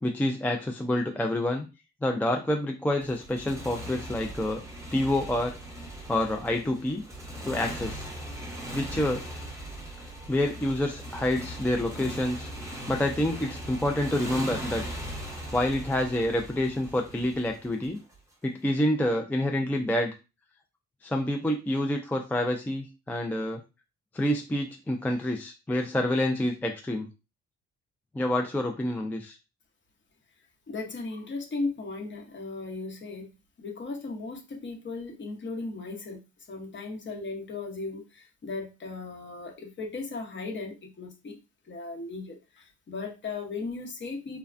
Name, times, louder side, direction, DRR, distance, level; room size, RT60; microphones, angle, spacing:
voice 1, 0.0-1.7 2.0-4.6 4.9-5.6 6.1-7.0 7.4-8.1 8.7-9.2 10.3-12.5 12.9-14.8 15.3-18.0 18.4-20.1 21.0-23.6 24.1-27.1 28.1-29.4, left 1 dB, 5° left, 3 dB, 0.3 m, -28 dB
Motorcycle, 3.0-18.2, right 1 dB, 10° right, 0.9 m, -39 dB
voice 2, 30.7-33.3 33.6-36.2 36.5-41.4 41.7-44.4, left 3 dB, 40° left, 2 dB, 0.9 m, -36 dB
3.2 x 2.2 x 2.5 m, 0.28 s
cardioid pair, 90°, 30 cm